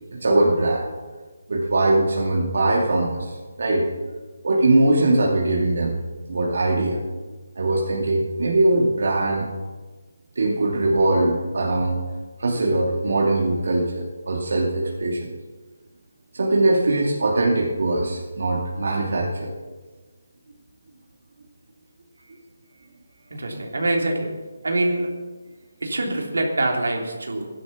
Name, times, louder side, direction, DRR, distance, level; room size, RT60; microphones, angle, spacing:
voice 1, 0.1-0.9 1.5-3.9 4.4-6.0 6.3-7.0 7.6-9.5 10.4-12.0 12.4-15.3 16.3-19.5 22.3-22.4, right 2 dB, 65° right, -3 dB, 2.6 m, -21 dB
voice 2, 23.3-24.3 24.6-25.1 25.8-27.4, right 2 dB, 85° right, 1 dB, 3.4 m, -24 dB
14.5 x 11.0 x 6.1 m, 1.3 s
hypercardioid pair, 165°, 0 cm